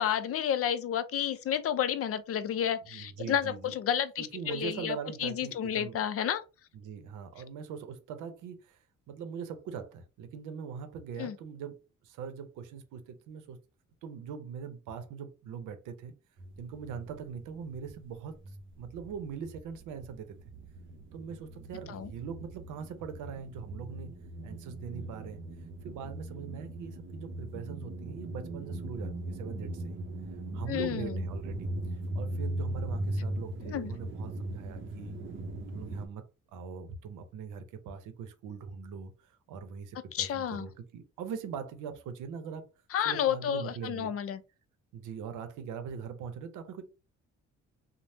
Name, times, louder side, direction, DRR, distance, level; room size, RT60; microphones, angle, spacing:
voice 1, 0.0-6.4 11.2-11.4 21.9-22.1 30.7-31.2 33.6-33.9 40.1-40.7 42.9-44.4, left 9 dB, 50° left, 0.4 m, -31 dB
voice 2, 2.9-3.7 4.2-6.0 6.7-8.8 9.1-13.6 14.0-16.1 16.6-20.4 21.1-24.1 24.4-25.4 25.8-30.0 30.5-35.2 35.7-36.3 36.5-42.7 43.0-44.1 44.9-46.8, right 6 dB, 90° right, 0.7 m, -41 dB
sound 1, 16.4-18.0 18.3-36.1, right 1 dB, 40° right, 0.6 m, -39 dB
3.2 x 2.0 x 2.7 m
cardioid pair, 90°, 30 cm